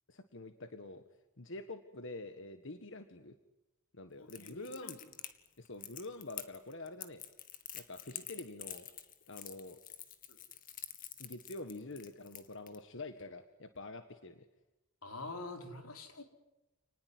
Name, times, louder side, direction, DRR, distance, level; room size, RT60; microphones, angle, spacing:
voice 1, 0.1-1.0 1.4-3.4 3.9-5.0 5.6-7.2 7.7-8.9 9.3-9.8 11.2-14.4, left 2 dB, 60° left, 8 dB, 1.7 m, -46 dB
voice 2, 4.2-5.0 10.3-10.4 15.0-16.2, left 2 dB, 90° left, 5 dB, 4.6 m, -46 dB
Crackle, 4.3-12.8, left 10 dB, 40° left, 2.1 m, -47 dB
30.0 x 20.0 x 9.7 m, 0.99 s
head